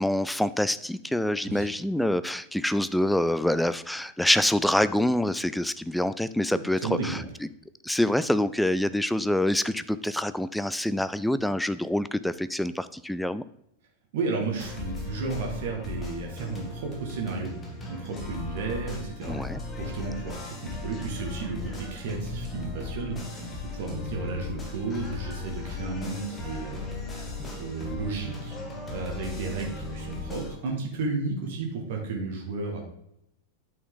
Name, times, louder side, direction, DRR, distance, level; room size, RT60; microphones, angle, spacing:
voice 1, 0.0-7.2 7.8-13.4 19.3-19.6, left 1 dB, 5° left, 14 dB, 0.4 m, -26 dB
voice 2, 6.5-7.3 14.1-17.5 17.9-19.4 19.7-26.9 27.6-28.6 28.9-32.8, right 4 dB, 55° right, 0 dB, 2.1 m, -33 dB
sound 1, 14.6-30.6, left 3 dB, 20° left, 1.8 m, -37 dB
9.4 x 5.9 x 3.9 m, 0.77 s
figure-of-eight pair, 90°, 0 cm